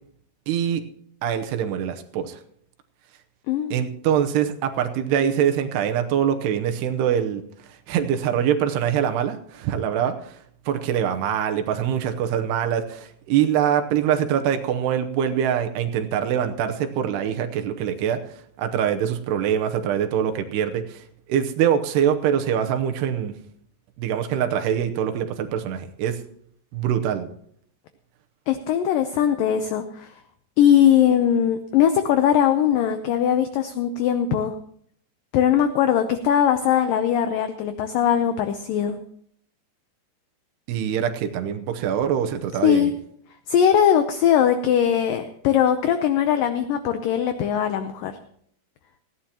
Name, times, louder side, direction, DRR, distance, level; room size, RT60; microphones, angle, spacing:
voice 1, 0.5-0.8 1.2-2.4 3.7-7.4 7.9-10.4 10.7-18.2 18.6-21.0 21.3-23.4 24.0-26.2 26.7-27.3 40.7-42.9, right 9 dB, 80° right, 6 dB, 2.9 m, -24 dB
voice 2, 3.5-3.9 28.5-30.1 30.6-34.6 35.3-39.0 42.6-42.9 43.5-48.1, left 9 dB, 85° left, 9 dB, 1.9 m, -20 dB
18.5 x 15.0 x 2.9 m, 0.65 s
omnidirectional pair, 4.9 m